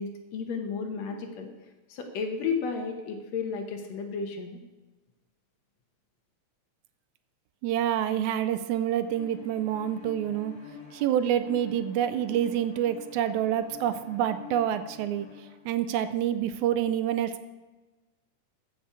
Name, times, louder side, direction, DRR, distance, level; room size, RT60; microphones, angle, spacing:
voice 1, 0.0-1.5 1.9-4.6, left 5 dB, 70° left, 4 dB, 2.0 m, -33 dB
voice 2, 7.6-10.5 10.9-15.3 15.7-17.4, right 10 dB, 80° right, 12 dB, 1.9 m, -27 dB
Bowed string instrument, 9.0-15.6, left 4 dB, 45° left, 2.7 m, -47 dB
14.5 x 5.8 x 4.8 m, 1.2 s
omnidirectional pair, 3.5 m